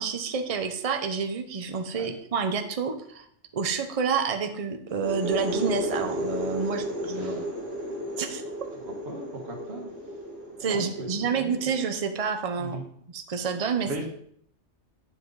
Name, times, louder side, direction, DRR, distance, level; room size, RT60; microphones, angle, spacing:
voice 1, 0.0-3.3 3.5-7.5 8.2-8.4 10.6-12.8 13.1-13.9, right 6 dB, 35° right, 7 dB, 0.7 m, -29 dB
sound 1, 4.9-12.4, equal, 80° right, 2.3 m, -34 dB
voice 2, 9.1-9.9 10.6-11.4 12.6-12.9 13.8-14.1, right 2 dB, 60° right, 0 dB, 1.9 m, -38 dB
9.8 x 5.6 x 4.0 m, 0.66 s
omnidirectional pair, 1.3 m